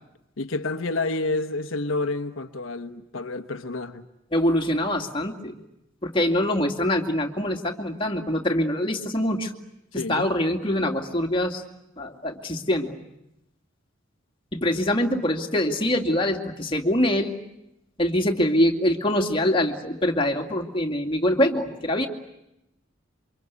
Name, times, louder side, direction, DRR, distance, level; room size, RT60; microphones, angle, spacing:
voice 1, 0.4-4.1 9.9-10.3, left 2 dB, 80° left, 1.2 m, -29 dB
voice 2, 4.3-5.5 6.0-9.5 9.9-11.6 12.0-12.9 14.5-17.4 18.0-22.1, left 1 dB, 25° left, 2.4 m, -24 dB
28.0 x 25.0 x 8.2 m
head